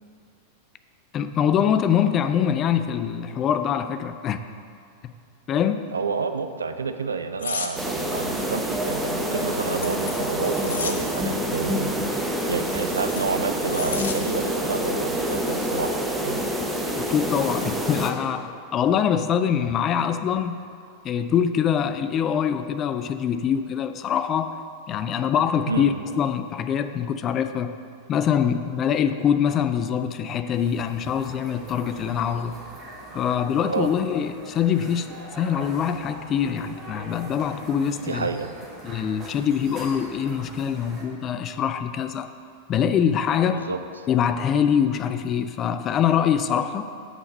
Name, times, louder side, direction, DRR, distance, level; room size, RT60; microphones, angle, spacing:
voice 1, 1.1-4.5 5.0-5.1 5.5-5.9 17.0-20.6 21.0-24.6 24.9-27.7 28.1-32.6 33.1-35.1 35.3-38.3 38.8-42.3 42.7-43.7 44.1-46.9, left 8 dB, 30° left, 10 dB, 0.4 m, -24 dB
voice 2, 5.9-16.0 16.2-16.4 25.7-25.9 33.7-33.9 38.0-38.5 43.5-43.8, right 5 dB, 75° right, 9 dB, 0.4 m, -29 dB
sound 1, 7.4-7.7 9.2-11.0 12.4-14.2 14.6-14.8, left 5 dB, 65° left, 0.6 m, -33 dB
sound 2, 7.8-18.1, equal, 5° right, 0.9 m, -27 dB
sound 3, 30.6-41.0, right 1 dB, 25° right, 1.8 m, -42 dB
8.1 x 5.8 x 5.1 m, 2.4 s
figure-of-eight pair, 90°, 0 cm